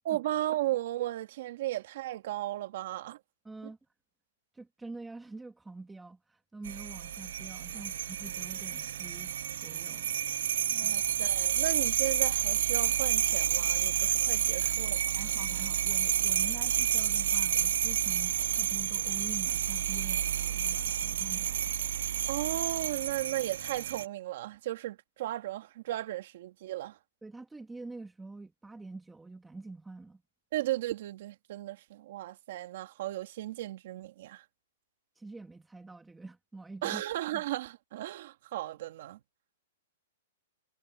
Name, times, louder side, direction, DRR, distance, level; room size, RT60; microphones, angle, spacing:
voice 1, 0.0-3.2 7.7-7.8 10.7-15.2 22.3-27.0 30.5-34.4 36.8-39.2, right 15 dB, 45° right, 2.1 m, -35 dB
voice 2, 3.4-3.8 4.5-10.1 10.8-10.9 15.2-21.7 27.2-30.2 35.2-37.0 37.3-37.4, right 3 dB, 5° right, 2.4 m, -46 dB
sound 1, 6.6-24.1, right 10 dB, 60° right, 0.3 m, -30 dB
hypercardioid pair, 170°, 0 cm